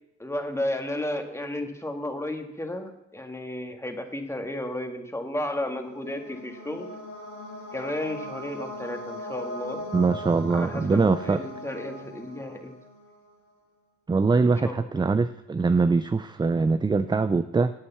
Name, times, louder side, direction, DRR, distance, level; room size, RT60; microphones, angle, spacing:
voice 1, 0.2-6.9 7.7-9.8 10.5-12.8 14.6-14.8, left 1 dB, 10° left, 4 dB, 1.9 m, -33 dB
sound 1, 5.5-13.3, left 1 dB, 75° left, 3.0 m, -39 dB
voice 2, 9.9-11.4 14.1-17.7, right 4 dB, 15° right, 12 dB, 0.4 m, -23 dB
11.5 x 8.6 x 7.1 m, 0.87 s
cardioid pair, 90°, 30 cm